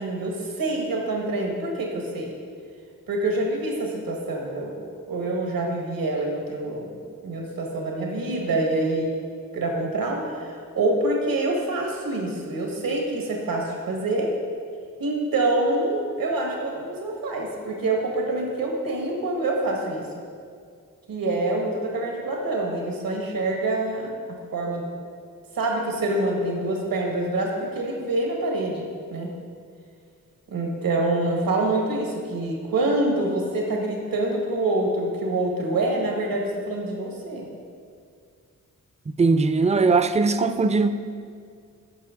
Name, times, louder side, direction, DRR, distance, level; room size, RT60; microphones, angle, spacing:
voice 1, 0.0-2.3 3.1-6.9 7.2-9.1 9.5-14.3 15.0-20.1 21.1-24.1 24.5-24.9 25.5-29.3 30.5-37.5, right 2 dB, 80° right, 0 dB, 1.5 m, -26 dB
voice 2, 39.2-40.9, right 4 dB, 20° right, 10 dB, 0.5 m, -20 dB
14.0 x 5.8 x 3.7 m, 2.2 s
cardioid pair, 60°, 34 cm